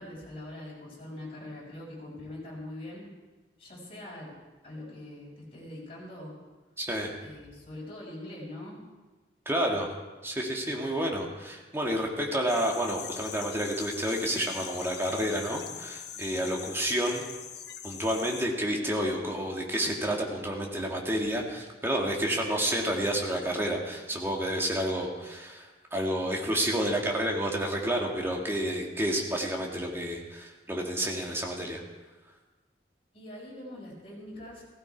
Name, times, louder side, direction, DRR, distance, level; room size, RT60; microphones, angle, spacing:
voice 1, 0.0-3.0 3.6-4.3 4.6-6.4 7.2-8.8 33.1-34.6, left 1 dB, 35° left, -5 dB, 6.5 m, -43 dB
voice 2, 6.8-7.1 9.5-9.9 10.2-17.2 17.8-31.8, equal, 15° right, 0 dB, 2.2 m, -30 dB
sound 1, 12.5-18.4, left 8 dB, 65° left, 1.2 m, -42 dB
16.0 x 15.5 x 4.7 m, 1.2 s
head